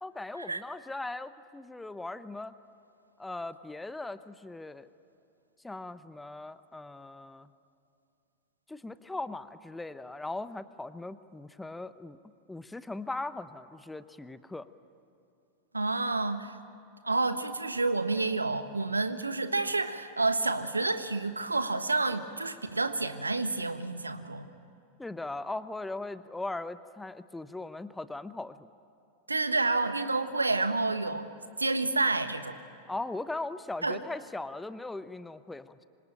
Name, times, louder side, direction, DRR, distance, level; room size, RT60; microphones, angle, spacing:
voice 1, 0.0-2.5 3.2-4.9 5.6-7.5 8.7-12.2 12.5-14.7 25.0-28.6 32.9-35.9, left 2 dB, 5° left, 14 dB, 0.9 m, -39 dB
voice 2, 15.7-16.5 17.0-24.5 29.3-31.3 31.6-32.6 33.8-34.0, right 3 dB, 80° right, 11 dB, 1.3 m, -29 dB
26.0 x 25.5 x 8.9 m, 2.6 s
figure-of-eight pair, 90°, 0 cm